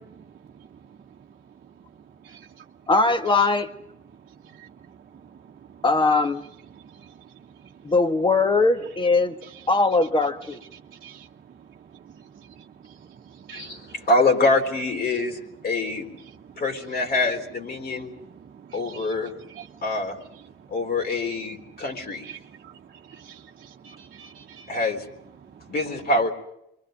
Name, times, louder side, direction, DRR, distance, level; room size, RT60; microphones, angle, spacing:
voice 1, 0.3-1.3 1.6-1.7 2.2-2.6 4.4-5.8 6.7-7.8 9.4-9.5 10.7-14.1 16.2-16.6 17.8-19.8 20.3-20.7 22.2-24.8 25.4-25.7, right 8 dB, 50° right, -1 dB, 1.1 m, -48 dB
voice 2, 2.9-3.7 5.8-6.4 7.8-9.4 9.7-10.6 13.5-13.6, left 3 dB, 25° left, 8 dB, 1.7 m, -20 dB
voice 3, 13.5-16.1 16.6-18.1 18.7-19.3 19.8-20.2 20.7-22.3 24.7-25.0 25.7-26.3, left 2 dB, 50° left, 3 dB, 3.9 m, -25 dB
27.5 x 23.5 x 5.2 m, 0.80 s
cardioid pair, 90°, 20 cm